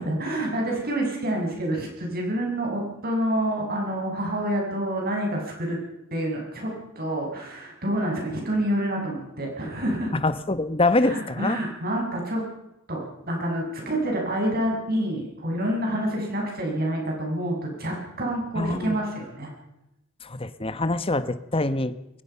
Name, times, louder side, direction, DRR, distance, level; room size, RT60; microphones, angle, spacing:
voice 1, 0.0-5.8 6.1-10.1 10.9-12.4 12.9-19.5, right 1 dB, 45° right, 0 dB, 6.7 m, -28 dB
voice 2, 10.2-11.6 18.5-18.9 20.2-21.9, left 2 dB, 25° left, 13 dB, 1.2 m, -24 dB
23.0 x 21.0 x 5.7 m, 0.87 s
head